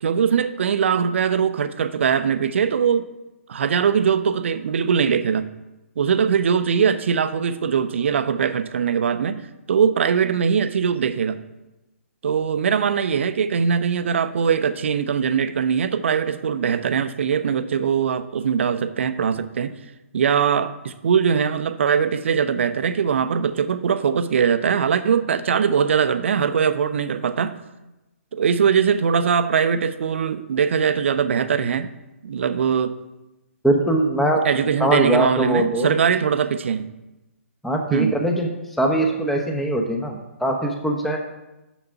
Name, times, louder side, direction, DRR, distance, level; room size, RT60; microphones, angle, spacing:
voice 1, 0.0-3.1 3.5-5.5 6.0-11.4 12.2-19.7 20.1-27.6 28.3-31.9 32.2-32.9 34.4-36.9 37.9-38.2, right 7 dB, 55° right, 12 dB, 0.6 m, -21 dB
voice 2, 33.6-34.4 34.8-35.9 37.6-38.5 38.8-41.2, right 1 dB, ahead, 1 dB, 0.8 m, -21 dB
7.0 x 6.6 x 5.7 m, 1.0 s
figure-of-eight pair, 130°, 8 cm